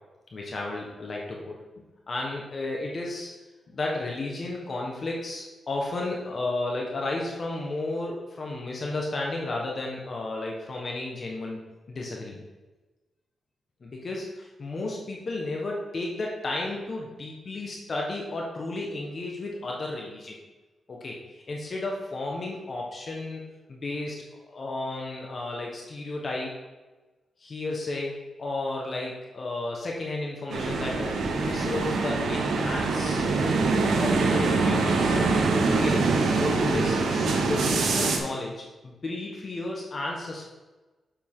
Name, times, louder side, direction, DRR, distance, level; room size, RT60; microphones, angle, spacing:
voice 1, 0.3-1.6 2.1-3.3 3.7-11.6 11.9-12.4 13.8-20.4 20.9-21.2 21.5-23.4 23.7-24.2 24.5-26.5 27.4-33.2 34.0-35.1 35.6-40.5, left 2 dB, 45° left, -1 dB, 1.3 m, -33 dB
sound 1, 30.5-38.2, right 3 dB, 90° right, 1.0 m, -24 dB
7.4 x 7.1 x 3.7 m, 1.2 s
wide cardioid pair, 115°, 0 cm